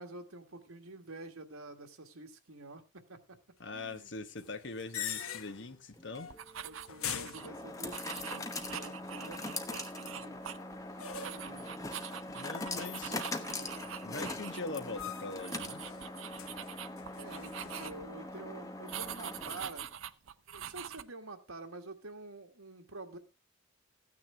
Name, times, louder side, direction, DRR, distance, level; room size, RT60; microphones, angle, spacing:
voice 1, 0.0-3.4 3.7-4.1 6.6-10.4 11.2-11.8 13.0-13.7 17.2-19.9 20.5-23.2, right 2 dB, 85° right, 1.8 m, -48 dB
voice 2, 3.6-6.3 12.3-13.2 14.0-15.8, left 3 dB, 55° left, 1.2 m, -42 dB
sound 1, 4.4-5.7 6.1-6.5 6.8-8.1 11.0-11.6 12.5-13.4 13.7-14.3 14.9-15.5 15.8-17.9, left 8 dB, 90° left, 1.1 m, -43 dB
sound 2, 6.0-19.9, left 2 dB, 15° left, 1.0 m, -42 dB
sound 3, 6.3-7.5 7.9-10.8 11.1-14.6 14.9-15.1 15.4-18.2 18.9-21.0, right 9 dB, 70° right, 0.6 m, -44 dB
14.5 x 9.5 x 3.5 m
head